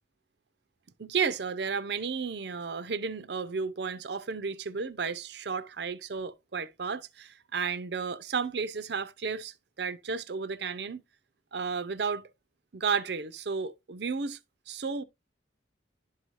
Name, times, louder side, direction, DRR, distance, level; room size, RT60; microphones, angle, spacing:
voice 1, 1.0-11.0 11.5-12.2 12.7-14.4 14.7-15.0, right 5 dB, 60° right, 0.6 m, -33 dB
11.5 x 4.7 x 2.6 m
head